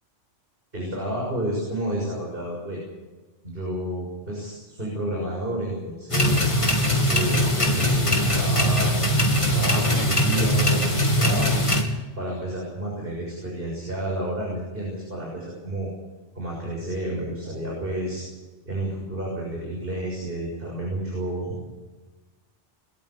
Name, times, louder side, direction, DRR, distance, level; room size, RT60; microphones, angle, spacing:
voice 1, 0.7-2.8 3.4-6.5 7.1-11.6 12.2-15.9 16.3-18.2 18.6-21.5, right 1 dB, 50° right, -2 dB, 6.7 m, -30 dB
sound 1, 6.1-11.8, equal, 25° left, 2.7 m, -21 dB
22.5 x 13.5 x 8.5 m, 1.2 s
omnidirectional pair, 1.2 m